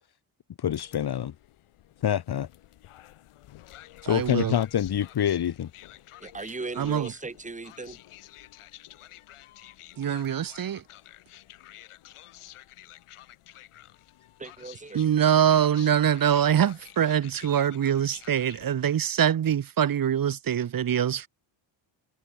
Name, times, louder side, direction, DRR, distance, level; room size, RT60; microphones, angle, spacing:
voice 1, 0.6-1.3 2.0-2.5 4.0-5.7, left 10 dB, 50° left, 1.9 m, -26 dB
sound 1, 0.7-18.7, left 14 dB, 85° left, 6.7 m, -50 dB
voice 2, 4.1-4.5 6.8-7.1 10.0-10.8 14.9-21.3, right 9 dB, 45° right, 1.3 m, -24 dB
voice 3, 6.2-8.0 14.4-15.0, right 3 dB, 15° right, 2.7 m, -38 dB
cardioid pair, 120°, 49 cm